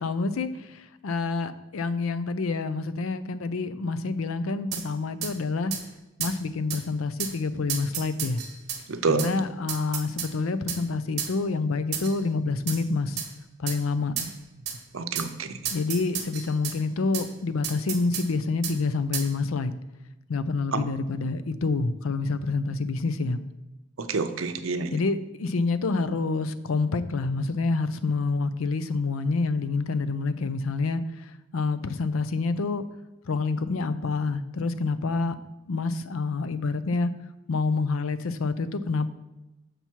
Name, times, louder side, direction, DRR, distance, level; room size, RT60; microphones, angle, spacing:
voice 1, 0.0-5.7 6.2-8.4 9.1-13.2 13.6-14.1 15.7-19.7 20.3-23.4 24.9-31.0 31.5-32.8 33.3-35.4 35.7-37.1 37.5-39.1, left 3 dB, 90° left, 13 dB, 0.5 m, -27 dB
sound 1, 4.7-4.9 5.2-5.3 5.7-5.8 6.2-6.4 6.7-6.8 7.2-7.3 7.7-8.8 9.2-9.3 9.7-10.3 10.7-10.8 11.2-11.3 11.9-12.2 12.7-12.8 13.2-13.3 13.7-13.8 14.2-14.3 14.7-14.8 15.1-15.3 15.6-16.8 17.1-17.3 17.6-18.3 18.6-18.8 19.1-19.3, right 8 dB, 55° right, 1.1 m, -32 dB
voice 2, 8.9-9.3 14.9-15.5 20.7-20.8 24.0-24.9, right 4 dB, 80° right, 9 dB, 0.6 m, -27 dB
6.8 x 5.7 x 4.5 m, 1.0 s
head